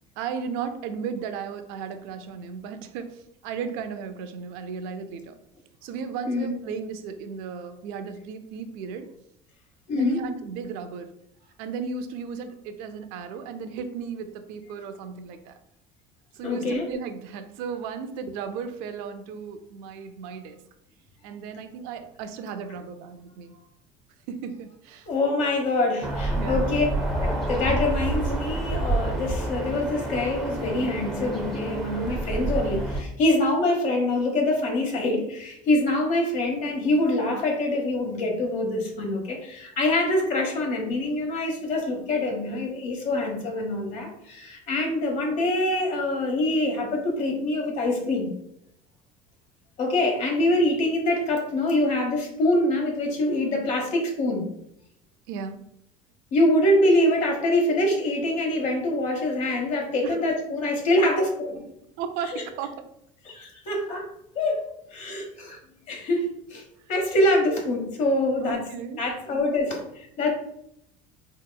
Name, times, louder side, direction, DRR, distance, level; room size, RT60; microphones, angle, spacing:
voice 1, 0.2-5.4 5.8-9.1 9.9-11.1 11.6-15.6 16.3-20.6 21.2-23.5 24.3-25.1 26.3-26.9 55.3-55.6 60.0-60.2 62.0-62.9 68.4-69.0 69.4-69.5, right 6 dB, 80° right, 8 dB, 0.5 m, -35 dB
voice 2, 6.2-6.6 9.9-10.3 16.4-16.9 25.1-26.8 27.2-48.3 49.8-54.5 56.3-61.6 62.3-62.4 63.3-64.1 64.3-64.7 64.9-65.6 65.9-66.6 66.9-68.6 69.0-70.3, left 1 dB, 60° left, 1 dB, 1.1 m, -25 dB
sound 1, 26.0-33.0, right 2 dB, ahead, 0.6 m, -28 dB
4.0 x 2.9 x 2.2 m, 0.77 s
cardioid pair, 130°, 14 cm